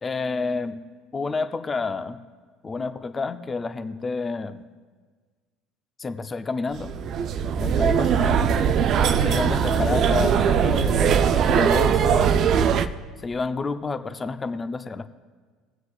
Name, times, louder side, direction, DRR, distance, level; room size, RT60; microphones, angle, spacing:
voice 1, 0.0-0.8 1.1-2.2 2.6-4.6 6.0-6.9 7.6-8.5 9.2-12.4 13.2-15.1, left 4 dB, 25° left, 9 dB, 0.6 m, -29 dB
sound 1, 6.8-12.9, right 7 dB, 55° right, 0.5 m, -20 dB
22.0 x 7.8 x 2.4 m, 1.5 s
hypercardioid pair, 75°, 0 cm